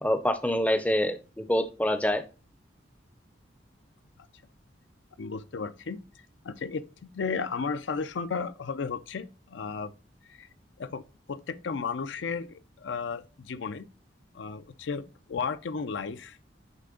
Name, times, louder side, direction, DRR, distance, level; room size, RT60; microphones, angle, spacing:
voice 1, 0.0-2.2, equal, 5° left, 0.5 m, -26 dB
voice 2, 5.2-6.0 6.4-9.9 10.3-10.5 10.8-11.0 11.3-13.9 14.3-16.4, left 5 dB, 75° left, 0.5 m, -34 dB
9.1 x 3.3 x 3.8 m
head